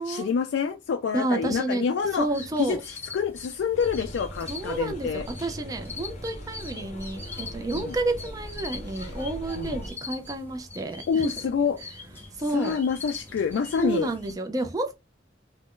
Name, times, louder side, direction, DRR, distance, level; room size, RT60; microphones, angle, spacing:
voice 1, 0.0-2.3 2.6-5.3 7.7-7.9 9.6-9.8 11.1-11.8 12.5-14.1, left 6 dB, 85° left, 0.3 m, -27 dB
voice 2, 1.1-1.9 2.2-2.8 4.5-11.2 12.4-12.8 13.8-15.0, right 2 dB, 20° right, 0.3 m, -30 dB
sound 1, 2.0-14.3, left 3 dB, 10° left, 0.8 m, -43 dB
sound 2, 3.7-9.9, equal, 40° left, 0.6 m, -40 dB
2.4 x 2.1 x 3.5 m
head